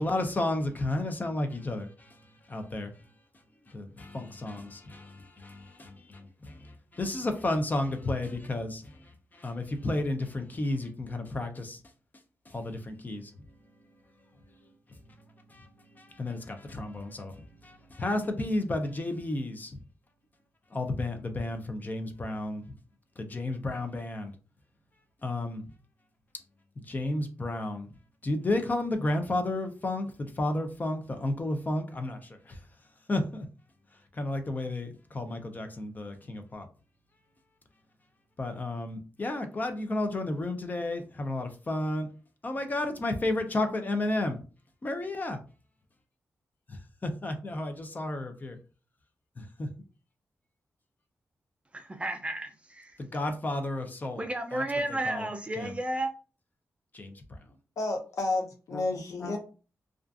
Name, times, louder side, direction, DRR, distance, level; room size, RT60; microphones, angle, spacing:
voice 1, 0.0-2.2 2.5-2.9 3.6-11.8 12.5-13.3 14.5-14.6 15.5-19.8 20.7-22.7 23.2-24.3 25.2-25.6 26.8-27.9 28.2-32.6 33.1-33.5 34.1-36.7 38.4-42.1 42.4-44.4 44.8-45.4 46.7-48.6 49.4-49.7 53.0-54.6 54.9-55.3 55.5-55.8 56.9-57.4 58.7-58.8 59.2-59.4, left 2 dB, 30° left, 0.5 m, -32 dB
voice 2, 51.7-52.9 54.2-56.1, right 1 dB, 20° right, 0.4 m, -32 dB
voice 3, 57.8-59.4, left 2 dB, 80° left, 0.6 m, -31 dB
2.4 x 2.3 x 2.4 m
cardioid pair, 85°, 6 cm